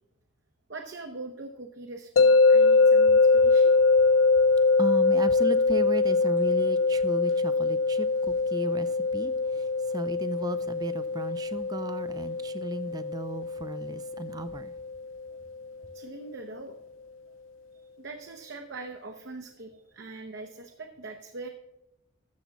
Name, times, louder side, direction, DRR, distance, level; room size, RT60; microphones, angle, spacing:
voice 1, 0.7-3.7 15.9-16.8 18.0-21.5, right 3 dB, 65° right, 0.8 m, -42 dB
sound 1, 2.2-15.2, left 3 dB, 80° left, 0.4 m, -23 dB
voice 2, 4.8-14.7, right 2 dB, 20° right, 0.3 m, -35 dB
13.0 x 7.1 x 4.0 m
head